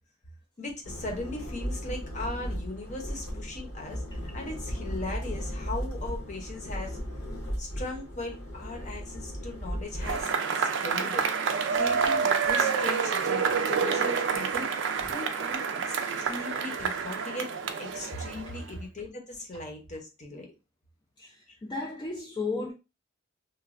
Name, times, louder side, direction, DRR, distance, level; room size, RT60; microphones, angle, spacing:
voice 1, 0.6-7.0 7.6-11.3 11.7-14.7 15.0-17.5 17.8-20.5, left 2 dB, 35° left, 0.8 m, -38 dB
sound 1, 0.8-10.2, equal, 80° left, 1.3 m, -36 dB
Cheering / Applause / Crowd, 10.0-18.7, right 6 dB, 65° right, 0.4 m, -28 dB
voice 2, 21.2-22.7, left 3 dB, 20° left, 0.4 m, -34 dB
3.1 x 2.3 x 2.4 m
head